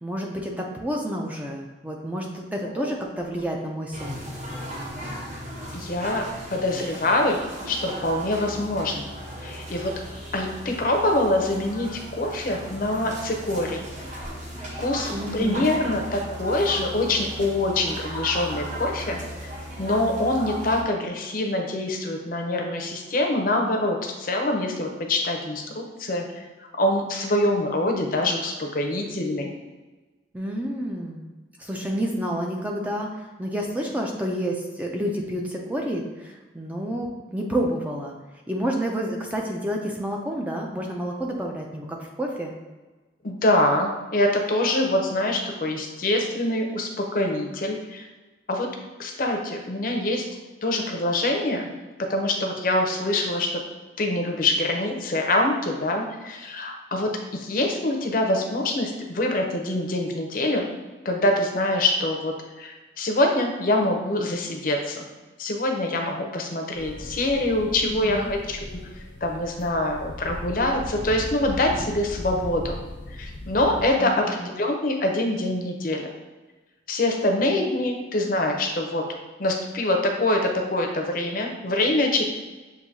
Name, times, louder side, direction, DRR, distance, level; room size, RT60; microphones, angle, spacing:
voice 1, 0.0-4.2 15.1-15.7 30.3-31.2 31.6-38.1 38.5-42.5 67.8-68.3 74.0-74.5, equal, 10° right, 0 dB, 0.4 m, -29 dB
sound 1, 3.9-20.8, equal, 40° right, 0.8 m, -36 dB
voice 2, 5.7-7.4 7.7-9.1 9.4-9.9 10.3-13.8 14.8-19.2 19.8-26.4 26.8-29.5 43.2-48.1 48.5-48.7 49.0-50.3 50.6-51.7 52.0-53.6 54.0-60.7 61.0-65.1 65.4-68.8 69.2-72.8 73.1-76.1 76.9-79.1 79.4-82.2, left 1 dB, 50° left, 2 dB, 0.6 m, -25 dB
sound 2, 66.7-73.9, left 1 dB, 90° left, 0.8 m, -37 dB
7.1 x 2.7 x 2.7 m, 1.2 s
head